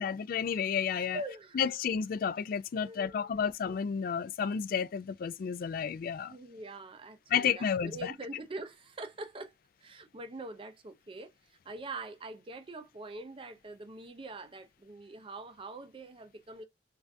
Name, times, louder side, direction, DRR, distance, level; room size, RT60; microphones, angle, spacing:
voice 1, 0.0-1.2 1.6-6.3 7.3-8.1, left 7 dB, 55° left, 0.3 m, -31 dB
voice 2, 1.1-1.6 2.7-3.4 6.3-9.5 9.8-16.6, right 2 dB, 30° right, 0.5 m, -44 dB
3.3 x 2.4 x 2.5 m
head